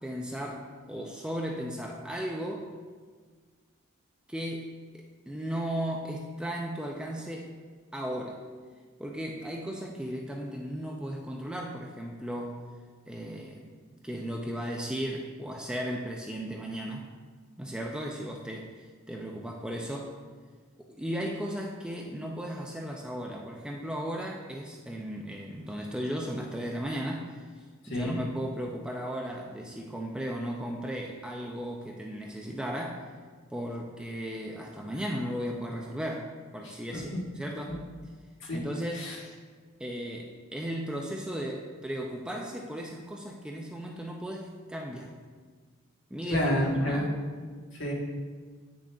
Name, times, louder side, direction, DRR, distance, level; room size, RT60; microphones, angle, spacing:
voice 1, 0.0-2.7 4.3-7.5 7.9-8.4 9.0-12.6 13.1-13.7 14.0-17.1 17.6-20.1 20.8-27.4 27.9-33.1 33.5-37.8 38.5-39.1 39.8-45.1 46.1-47.1, equal, 5° right, 0 dB, 0.4 m, -36 dB
voice 2, 27.8-28.2 36.9-37.0 38.4-38.6 38.9-39.2 46.3-47.1 47.7-47.9, equal, 60° left, -3 dB, 1.4 m, -29 dB
8.4 x 6.2 x 2.3 m, 1.5 s
head